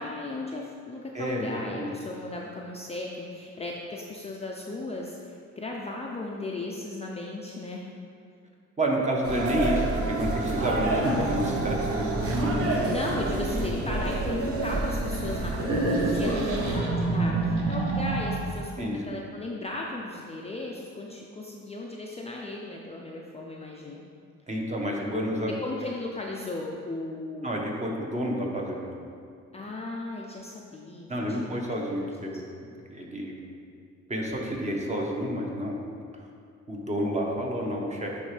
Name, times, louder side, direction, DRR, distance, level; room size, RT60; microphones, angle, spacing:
voice 1, 0.0-7.8 12.9-24.0 25.6-27.6 29.5-31.7, left 2 dB, 20° left, -2 dB, 0.5 m, -36 dB
voice 2, 1.1-1.9 8.8-12.1 12.4-12.7 18.8-19.3 24.5-25.6 27.4-28.9 31.1-33.4 34.1-35.8 36.7-38.2, equal, 25° right, -1 dB, 1.0 m, -30 dB
sound 1, 9.2-16.8, right 2 dB, 50° right, 0.9 m, -28 dB
sound 2, 15.6-18.7, right 2 dB, 80° right, 1.0 m, -27 dB
9.7 x 3.3 x 3.3 m, 2.3 s
cardioid pair, 90°, 30 cm